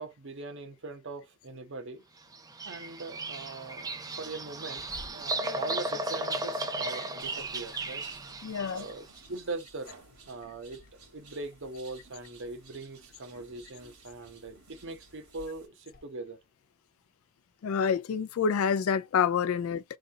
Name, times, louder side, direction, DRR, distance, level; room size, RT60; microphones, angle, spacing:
voice 1, 0.0-2.0 2.6-4.8 5.1-8.0 8.7-9.9 10.3-16.4, right 3 dB, 60° right, 0.9 m, -41 dB
Bird vocalization bird call bird song, 2.3-9.0, right 2 dB, 15° right, 0.5 m, -35 dB
sound 1, 4.8-10.1 10.5-10.9 11.3-13.3 13.9-16.1, left 2 dB, 45° left, 1.0 m, -53 dB
sound 2, 7.2-15.7, right 3 dB, 80° right, 2.2 m, -55 dB
voice 2, 8.4-8.8 17.6-19.8, left 6 dB, 70° left, 0.3 m, -27 dB
4.0 x 2.7 x 2.7 m
head